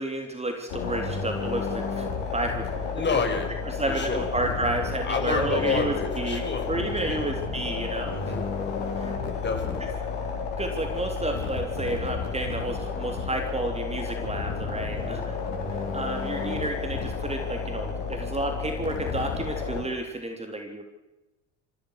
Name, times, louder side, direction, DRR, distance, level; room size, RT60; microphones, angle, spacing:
voice 1, 0.0-2.1 2.3-2.8 3.6-8.3 9.0-9.1 10.6-15.3 15.9-20.8, right 2 dB, 15° right, 4 dB, 3.9 m, -31 dB
sound 1, 0.7-19.8, left 5 dB, 65° left, 5.7 m, -31 dB
voice 2, 2.9-3.5 3.9-4.3 5.0-6.7 7.1-7.3 8.1-8.4 9.2-9.8 14.9-15.2, left 4 dB, 30° left, 4 dB, 6.1 m, -29 dB
25.5 x 16.0 x 6.8 m, 1.0 s
hypercardioid pair, 65°, 37 cm